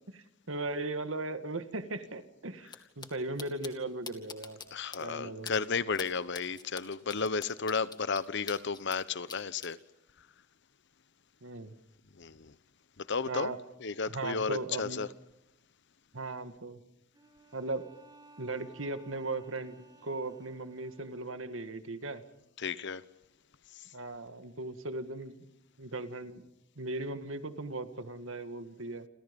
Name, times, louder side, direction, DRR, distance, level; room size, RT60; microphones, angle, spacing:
voice 1, 0.1-2.7 3.0-4.6 5.0-5.5 11.4-11.7 13.3-13.6 14.1-15.0 16.1-16.8 17.5-17.8 18.4-22.2 23.9-25.4 25.8-26.4 26.8-29.1, right 2 dB, 75° right, 2.0 m, -37 dB
sound 1, 2.7-2.8 3.0-3.1 3.4-3.7 4.1-4.7 4.9-5.0 5.5-5.6 5.9-6.1 6.3-9.0 9.3-9.7, left 5 dB, 20° left, 2.3 m, -44 dB
voice 2, 4.7-9.8 12.1-12.5 13.0-13.5 13.8-15.1 22.6-23.0 23.7-23.9, left 5 dB, 60° left, 1.0 m, -33 dB
Bowed string instrument, 17.1-21.7, right 2 dB, 20° right, 3.0 m, -59 dB
29.0 x 27.5 x 5.4 m
head